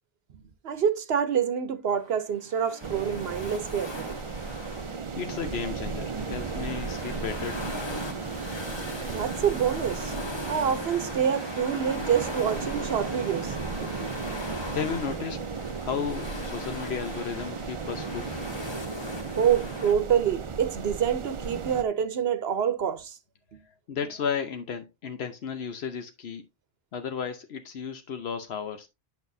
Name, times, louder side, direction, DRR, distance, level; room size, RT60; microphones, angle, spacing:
voice 1, 0.6-4.1 9.1-10.1 10.5-14.1 19.4-23.1 23.5-23.6, right 8 dB, 80° right, 1.0 m, -27 dB
sound 1, 1.9-19.9, left 2 dB, 25° left, 1.3 m, -40 dB
sound 2, 2.8-21.8, right 5 dB, 40° right, 0.5 m, -35 dB
voice 2, 5.2-7.8 14.4-15.4 15.8-18.3 23.9-26.4 26.9-28.9, left 7 dB, 85° left, 1.1 m, -34 dB
9.2 x 6.1 x 2.6 m
omnidirectional pair, 1.0 m